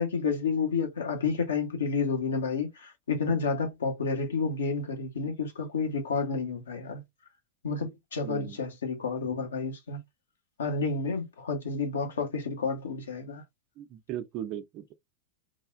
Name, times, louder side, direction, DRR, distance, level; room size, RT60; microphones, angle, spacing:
voice 1, 0.0-7.0 7.6-10.0 10.6-13.4, left 4 dB, 65° left, 0.9 m, -30 dB
voice 2, 8.2-8.6 13.8-14.9, right 11 dB, 40° right, 0.5 m, -38 dB
3.2 x 2.4 x 2.4 m
figure-of-eight pair, 90°, 0 cm